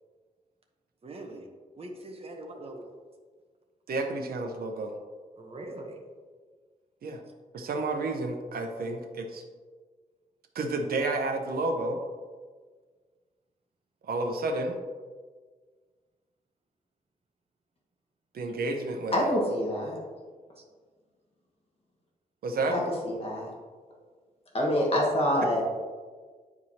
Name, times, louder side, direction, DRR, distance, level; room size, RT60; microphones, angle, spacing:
voice 1, 1.0-1.5 1.8-2.9 5.4-6.0 20.6-20.7, right 1 dB, 40° right, 2 dB, 1.0 m, -42 dB
voice 2, 3.9-4.9 7.0-7.2 7.5-9.4 10.5-12.0 14.1-14.7 18.3-19.3 22.4-22.8, right 2 dB, 90° right, 4 dB, 0.8 m, -30 dB
voice 3, 19.1-20.0 22.7-23.5 24.5-25.6, equal, 40° left, -3 dB, 1.5 m, -26 dB
9.5 x 4.7 x 2.8 m, 1.5 s
wide cardioid pair, 140°, 15 cm